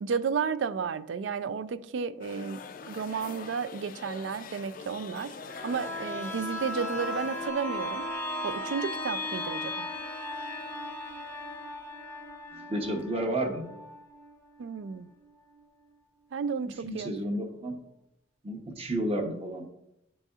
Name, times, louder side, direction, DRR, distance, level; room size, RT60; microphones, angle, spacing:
voice 1, 0.0-2.6 2.9-5.3 5.6-8.0 8.4-9.9 14.6-15.1 16.3-17.1, right 6 dB, 75° right, 0.3 m, -32 dB
sound 1, 2.2-7.5, left 5 dB, 45° left, 0.4 m, -43 dB
sound 2, 5.4-15.0 15.4-15.5, left 1 dB, 10° left, 0.7 m, -37 dB
voice 2, 12.5-13.7 16.6-17.8 18.4-19.6, right 1 dB, 30° right, 0.8 m, -32 dB
10.5 x 4.1 x 2.4 m
head